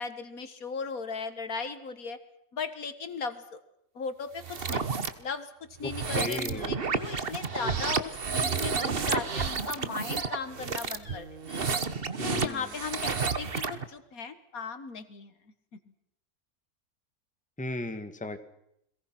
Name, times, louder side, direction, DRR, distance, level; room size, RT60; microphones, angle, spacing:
voice 1, 0.0-2.2 2.5-3.6 4.0-4.9 5.2-5.5 5.8-11.6 12.2-15.3, left 5 dB, 70° left, 11 dB, 2.0 m, -37 dB
sound 1, 4.4-5.1 5.8-13.8, right 5 dB, 40° right, 1.4 m, -31 dB
voice 2, 5.8-6.8 12.2-12.7 17.6-18.4, left 1 dB, 5° left, 9 dB, 1.4 m, -36 dB
sound 2, 6.5-6.8 7.0-7.2 8.7-9.0 9.4-9.6 11.0-11.7, left 3 dB, 40° left, 2.7 m, -51 dB
30.0 x 22.0 x 6.0 m, 0.78 s
omnidirectional pair, 1.6 m